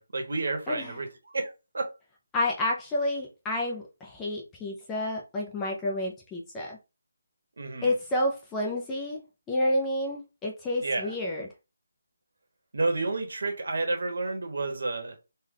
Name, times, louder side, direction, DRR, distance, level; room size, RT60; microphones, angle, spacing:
voice 1, 0.0-1.9 7.6-7.9 10.8-11.1 12.7-15.1, right 3 dB, 60° right, 1.1 m, -30 dB
voice 2, 0.7-1.0 2.3-6.8 7.8-9.2 9.5-11.5, left 1 dB, 5° left, 0.4 m, -29 dB
3.3 x 2.2 x 3.7 m
hypercardioid pair, 175°, 0 cm